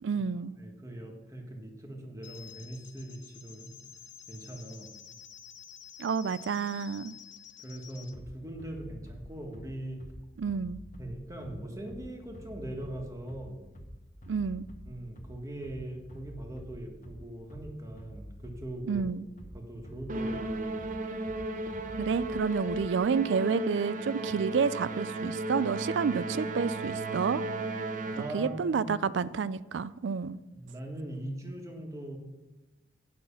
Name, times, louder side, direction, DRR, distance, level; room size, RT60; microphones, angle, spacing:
voice 1, 0.0-0.5 6.0-7.1 10.4-10.8 14.3-14.7 18.9-19.3 22.0-27.4 28.3-30.4, right 5 dB, 70° right, 0.4 m, -29 dB
voice 2, 0.6-3.7 4.3-4.9 7.6-10.0 11.0-13.6 14.9-19.1 19.5-20.6 28.1-28.9 30.5-32.2, right 1 dB, 15° right, 1.5 m, -41 dB
sound 1, 2.2-8.1, left 9 dB, 70° left, 0.8 m, -50 dB
Bass drum, 8.1-23.1, equal, 45° left, 1.4 m, -48 dB
Musical instrument, 20.1-28.6, right 2 dB, 45° right, 0.7 m, -35 dB
9.5 x 5.9 x 7.0 m
head